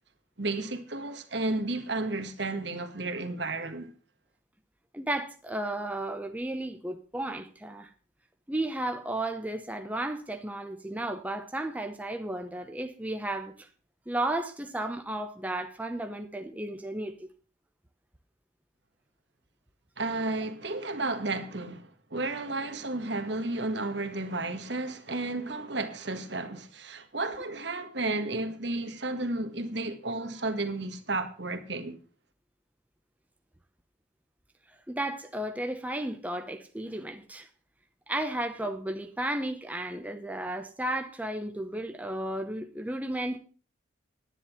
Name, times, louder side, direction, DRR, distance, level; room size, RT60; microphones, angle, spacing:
voice 1, 0.4-3.9 20.0-32.0, right 2 dB, 65° right, 1.6 m, -32 dB
voice 2, 4.9-7.9 8.5-13.7 14.1-17.3 34.9-37.5 38.1-43.4, right 1 dB, 10° right, 0.9 m, -33 dB
10.5 x 10.0 x 5.8 m
head